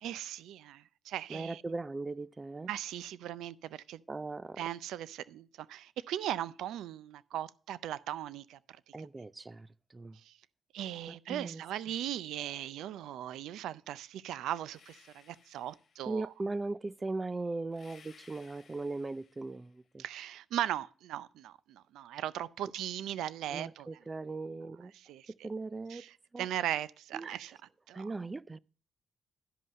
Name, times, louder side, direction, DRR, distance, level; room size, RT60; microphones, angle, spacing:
voice 1, 0.0-1.6 2.7-4.0 4.6-8.6 9.0-9.1 10.2-10.4 10.7-16.3 20.0-23.9 25.0-25.2 25.9-27.6 27.9-28.1, right 12 dB, 90° right, 0.4 m, -38 dB
voice 2, 1.3-2.7 4.1-4.6 8.9-10.2 11.1-11.6 16.1-20.0 23.5-24.9 25.4-26.0 26.3-26.5 27.1-27.4 27.9-28.6, right 3 dB, 25° right, 0.4 m, -39 dB
sound 1, 14.7-16.3 17.7-19.8, left 6 dB, 60° left, 1.3 m, -61 dB
11.0 x 5.4 x 6.2 m
cardioid pair, 85°, 0 cm